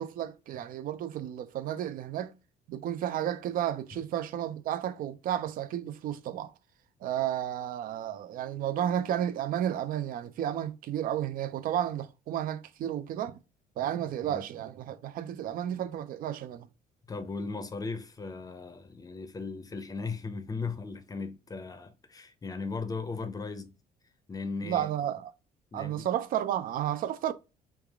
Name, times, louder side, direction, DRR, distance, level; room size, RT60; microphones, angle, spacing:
voice 1, 0.0-2.3 2.7-6.5 7.0-13.3 13.8-16.7 24.6-25.3 25.7-27.3, right 11 dB, 55° right, 0.4 m, -32 dB
voice 2, 17.1-23.7 24.3-24.9 25.7-26.1, left 4 dB, 20° left, 0.6 m, -37 dB
3.3 x 2.4 x 3.5 m
cardioid pair, 110°, 17 cm